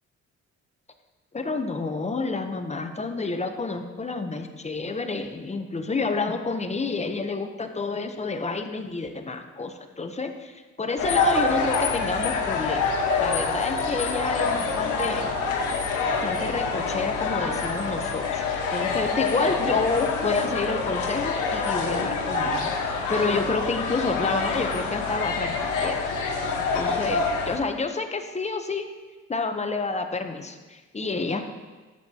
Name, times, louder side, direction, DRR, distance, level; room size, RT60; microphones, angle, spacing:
voice 1, 1.3-15.3 16.2-18.4 18.7-26.0 26.7-28.9 29.3-31.4, left 3 dB, 20° left, 6 dB, 0.8 m, -29 dB
sound 1, 11.0-27.6, left 4 dB, 90° left, 1.3 m, -26 dB
11.5 x 7.9 x 2.9 m, 1.3 s
cardioid pair, 90°, 30 cm